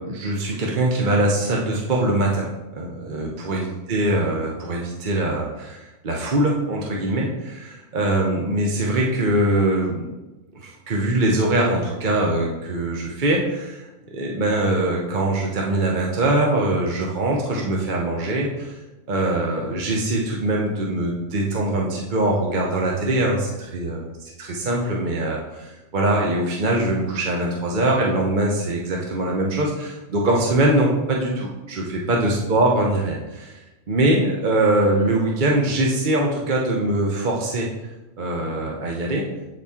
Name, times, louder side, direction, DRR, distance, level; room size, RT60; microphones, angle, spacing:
voice 1, 0.0-10.0 10.5-18.8 19.1-24.1 24.5-37.7 38.2-39.2, right 1 dB, 45° right, -2 dB, 0.9 m, -22 dB
8.3 x 4.2 x 3.6 m, 1.1 s
omnidirectional pair, 1.4 m